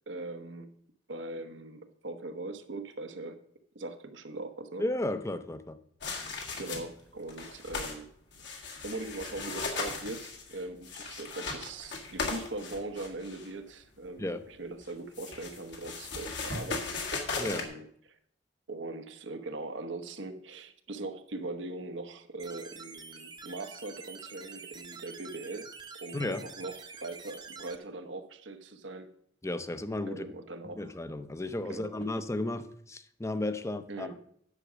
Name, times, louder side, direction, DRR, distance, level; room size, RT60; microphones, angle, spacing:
voice 1, 0.1-0.7 1.1-3.4 3.7-4.8 6.6-8.1 8.8-17.0 17.4-18.2 18.7-25.7 26.0-29.1 30.1-30.9 31.7-31.9 33.9-34.2, right 2 dB, 80° right, 1.0 m, -41 dB
voice 2, 4.8-5.8 14.2-14.4 17.4-17.7 26.1-26.4 29.4-30.3 30.7-34.1, left 1 dB, 15° left, 0.6 m, -34 dB
sound 1, 6.0-7.0 7.3-8.0 8.3-13.5 14.8-17.7, left 3 dB, 65° left, 1.8 m, -37 dB
sound 2, 22.4-27.8, right 5 dB, 25° right, 0.8 m, -47 dB
9.9 x 6.1 x 6.2 m
head